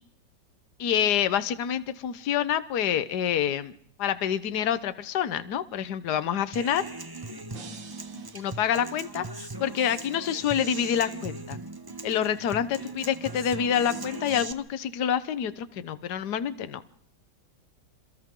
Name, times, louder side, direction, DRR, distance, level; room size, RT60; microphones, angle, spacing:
voice 1, 0.8-3.7 4.0-6.8 8.3-11.6 12.0-16.8, left 9 dB, 60° left, 13 dB, 1.6 m, -27 dB
Human voice / Acoustic guitar, 6.5-14.5, right 2 dB, 20° right, 0.6 m, -39 dB
sound 1, 7.5-9.7, right 5 dB, 80° right, 2.6 m, -49 dB
28.0 x 27.0 x 3.8 m, 0.67 s
omnidirectional pair, 2.0 m